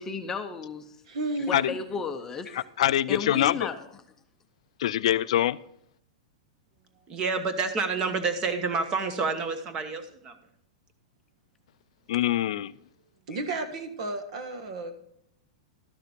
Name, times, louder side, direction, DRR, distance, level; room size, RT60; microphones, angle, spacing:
voice 1, 0.0-1.0 1.5-2.7 3.1-3.9, left 5 dB, 15° left, 6 dB, 0.6 m, -34 dB
voice 2, 1.1-1.8 13.3-14.9, right 2 dB, 60° right, 8 dB, 1.4 m, -33 dB
voice 3, 2.5-3.6 4.8-5.6 12.1-12.7, left 12 dB, 65° left, 17 dB, 0.4 m, -24 dB
voice 4, 7.1-10.3, right 4 dB, 20° right, 9 dB, 1.0 m, -28 dB
12.5 x 6.6 x 5.1 m, 0.73 s
supercardioid pair, 165°, 4 cm